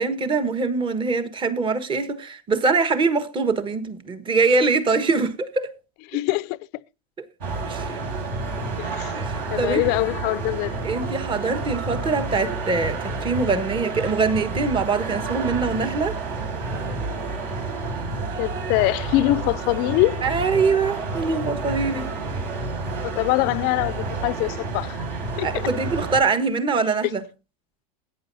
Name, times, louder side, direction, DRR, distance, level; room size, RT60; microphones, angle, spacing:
voice 1, 0.0-5.7 7.6-8.0 9.1-9.9 10.8-16.2 20.2-22.1 25.4-27.2, right 4 dB, 25° right, 1.4 m, -23 dB
voice 2, 6.1-6.6 8.8-9.1 9.5-10.8 18.4-20.2 23.0-25.0 25.4-25.5, left 19 dB, 55° left, 0.5 m, -23 dB
sound 1, 7.4-26.2, right 3 dB, 60° right, 4.8 m, -30 dB
17.0 x 9.4 x 2.7 m
supercardioid pair, 110°, 20 cm